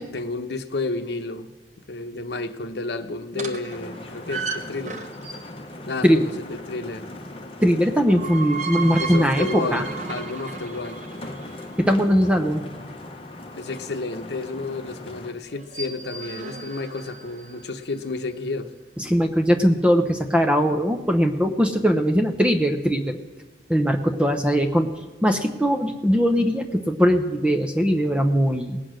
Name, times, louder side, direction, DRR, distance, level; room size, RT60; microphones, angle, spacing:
voice 1, 0.0-1.5 1.9-5.0 5.9-7.1 9.0-11.0 13.6-18.7, left 3 dB, 75° left, 0.9 m, -31 dB
sound 1, 3.3-5.7 7.9-11.9 15.5-17.8, right 4 dB, 45° right, 1.0 m, -34 dB
sound 2, 3.7-15.3, left 1 dB, 30° left, 1.0 m, -39 dB
voice 2, 7.6-9.8 11.8-12.6 19.0-23.2 23.7-24.9 25.2-28.8, equal, 5° right, 0.7 m, -20 dB
19.0 x 8.5 x 6.3 m
head